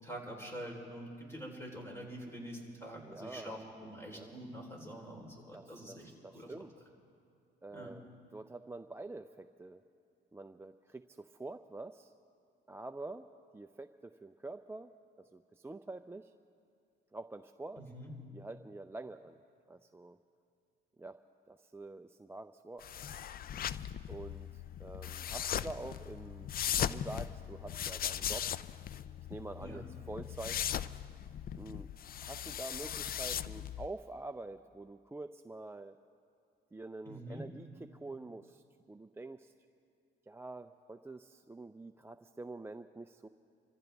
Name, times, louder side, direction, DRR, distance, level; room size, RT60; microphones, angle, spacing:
voice 1, 0.0-6.5 7.7-7.9 17.8-18.1 29.6-29.8 37.1-37.5, right 1 dB, 10° left, -1 dB, 4.0 m, -46 dB
voice 2, 3.0-3.6 4.1-4.4 5.5-6.7 7.6-9.8 10.3-12.1 12.7-13.3 13.5-14.9 15.2-16.3 17.1-17.8 18.3-19.4 19.7-20.2 21.0-21.2 21.5-22.9 24.1-28.5 29.3-30.6 31.6-31.9 32.2-36.0 36.7-39.5 40.3-43.3, right 2 dB, 10° right, 7 dB, 0.4 m, -46 dB
sound 1, 22.8-33.9, left 10 dB, 50° left, 0.4 m, -38 dB
26.5 x 14.5 x 3.5 m, 2.5 s
cardioid pair, 90°, 20 cm